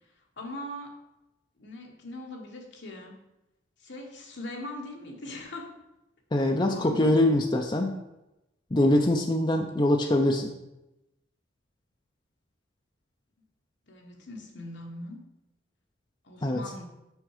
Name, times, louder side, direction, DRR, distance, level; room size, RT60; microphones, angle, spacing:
voice 1, 0.4-0.9 1.6-3.2 3.8-5.7 6.4-7.5 13.9-15.2 16.2-16.8, left 1 dB, 65° left, 0 dB, 1.5 m, -41 dB
voice 2, 6.3-8.0 8.7-10.5 16.4-16.6, left 1 dB, 25° left, 3 dB, 0.5 m, -23 dB
6.2 x 5.7 x 4.9 m, 0.94 s
head